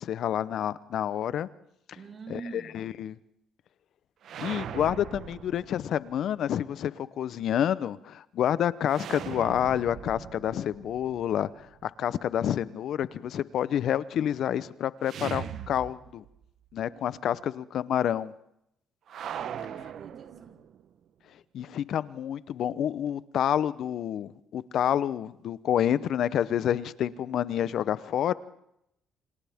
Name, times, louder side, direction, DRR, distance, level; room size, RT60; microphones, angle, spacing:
voice 1, 0.0-1.5 2.3-2.4 2.7-3.1 4.4-16.2 16.7-18.3 21.5-28.3, left 10 dB, 65° left, 17 dB, 0.8 m, -28 dB
voice 2, 1.9-2.9 16.9-17.5 19.4-20.6, right 4 dB, 45° right, 1 dB, 4.4 m, -46 dB
sound 1, 4.2-6.2 8.9-11.9 15.0-16.4 16.7-16.8 19.1-20.8, right 9 dB, 65° right, 0.9 m, -40 dB
28.0 x 26.5 x 3.6 m, 0.80 s
cardioid pair, 95°, 0 cm